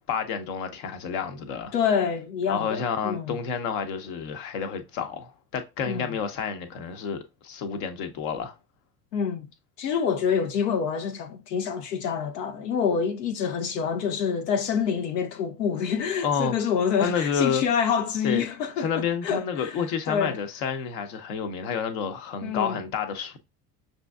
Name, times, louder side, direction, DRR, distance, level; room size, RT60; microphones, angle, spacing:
voice 1, 0.1-1.7 2.5-8.5 16.2-16.5 17.0-17.6 18.2-18.4 18.8-23.4, left 6 dB, 65° left, 0.9 m, -29 dB
voice 2, 1.7-3.4 5.9-6.2 9.1-9.5 9.8-20.4 22.4-22.8, left 7 dB, 85° left, 0.6 m, -27 dB
5.9 x 2.7 x 2.2 m
hypercardioid pair, 70°, 48 cm